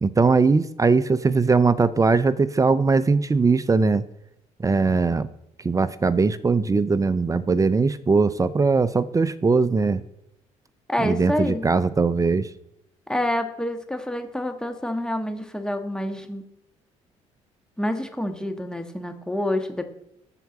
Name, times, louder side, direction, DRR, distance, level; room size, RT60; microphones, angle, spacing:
voice 1, 0.0-4.0 4.6-5.3 5.6-10.0 11.0-12.5, right 4 dB, 25° right, 15 dB, 0.6 m, -20 dB
voice 2, 10.9-11.7 13.1-16.4 17.8-19.9, left 1 dB, 5° left, 6 dB, 1.6 m, -27 dB
12.5 x 4.6 x 7.2 m, 0.80 s
supercardioid pair, 75°, 14 cm